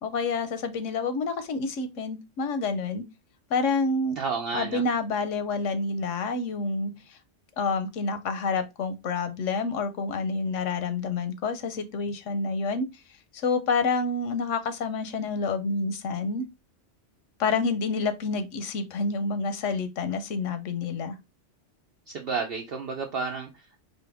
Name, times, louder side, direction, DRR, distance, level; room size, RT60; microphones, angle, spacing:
voice 1, 0.0-3.0 3.5-4.2 4.5-6.9 7.6-12.9 13.4-16.4 17.4-21.1, left 4 dB, 85° left, 1.1 m, -28 dB
voice 2, 4.2-4.8 22.1-23.8, right 5 dB, 60° right, 0.8 m, -31 dB
4.2 x 2.9 x 3.4 m
omnidirectional pair, 1.2 m